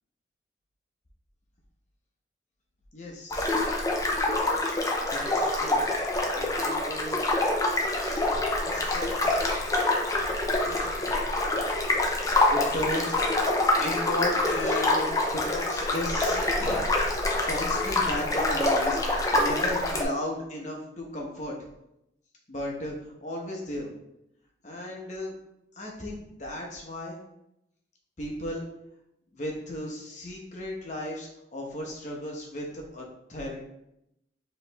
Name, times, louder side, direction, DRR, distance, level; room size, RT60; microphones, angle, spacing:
voice 1, 2.9-3.8 5.0-5.8 6.3-7.3 8.0-8.3 8.6-9.6 10.7-11.5 12.5-13.3 13.8-16.8 17.5-19.0 19.3-21.5 22.5-23.9 24.6-25.4 25.8-27.2 28.2-28.6 29.3-33.6, left 1 dB, 40° left, -1 dB, 1.0 m, -35 dB
sound 1, 3.3-20.0, left 2 dB, 20° left, 0.5 m, -26 dB
4.9 x 3.2 x 3.4 m, 0.82 s
head